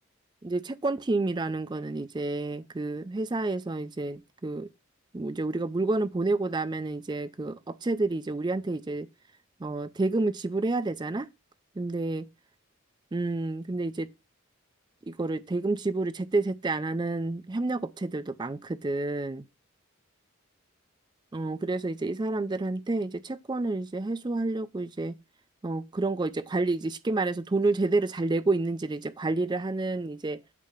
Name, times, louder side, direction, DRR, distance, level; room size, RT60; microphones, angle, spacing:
voice 1, 0.4-4.7 5.1-9.1 9.6-11.3 11.8-12.2 13.1-14.1 15.1-19.4 21.3-25.1 25.6-30.4, right 2 dB, 20° right, 0.4 m, -29 dB
8.3 x 2.8 x 5.0 m
head